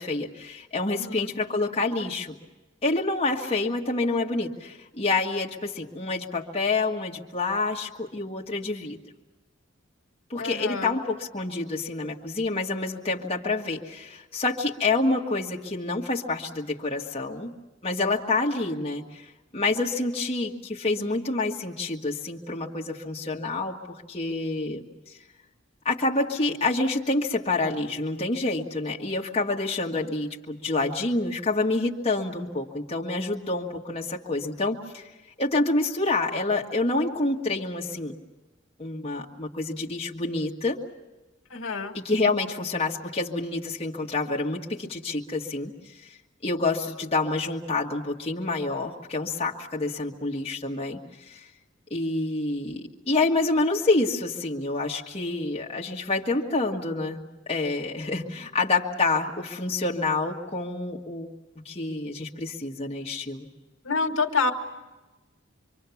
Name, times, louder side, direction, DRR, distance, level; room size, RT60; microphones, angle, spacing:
voice 1, 0.0-2.4 2.8-9.0 10.3-17.5 17.8-19.3 19.5-24.9 25.9-35.1 35.4-38.1 38.8-40.8 41.9-45.7 46.0-46.1 46.4-51.4 51.9-61.3 61.7-63.5, left 3 dB, 30° left, -2 dB, 1.7 m, -28 dB
voice 2, 1.0-1.3 10.4-11.0 41.5-41.9 63.8-64.5, left 4 dB, 85° left, 5 dB, 1.7 m, -27 dB
26.0 x 24.0 x 7.1 m, 1.1 s
head